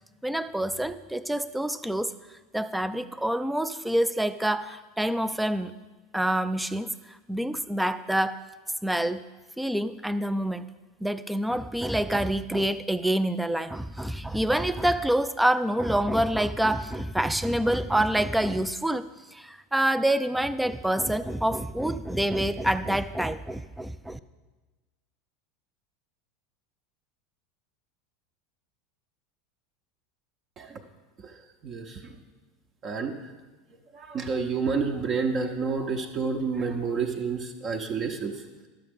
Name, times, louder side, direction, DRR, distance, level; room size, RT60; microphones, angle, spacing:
voice 1, 0.2-2.1 2.5-5.7 6.1-6.9 7.3-8.4 8.8-9.2 9.6-10.7 11.0-19.0 19.3-24.2, right 1 dB, 5° right, 12 dB, 0.4 m, -27 dB
voice 2, 31.6-32.0 32.8-33.1 33.9-38.3, right 5 dB, 35° right, 3 dB, 0.8 m, -29 dB
12.0 x 6.5 x 5.3 m, 1.2 s
figure-of-eight pair, 80°, 0 cm